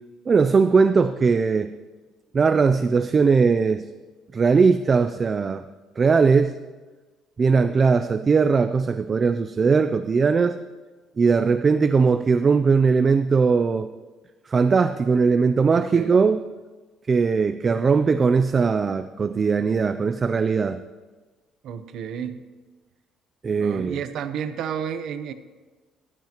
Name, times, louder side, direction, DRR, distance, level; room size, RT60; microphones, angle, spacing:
voice 1, 0.3-1.7 2.3-3.8 4.3-5.6 6.0-6.5 7.4-10.6 11.2-13.9 14.5-16.4 17.1-20.8 23.4-24.0, right 5 dB, 25° right, 10 dB, 0.4 m, -19 dB
voice 2, 15.7-16.1 21.6-22.4 23.6-25.3, right 8 dB, 60° right, 10 dB, 0.8 m, -31 dB
15.0 x 13.0 x 3.0 m, 1.3 s
cardioid pair, 145°, 0 cm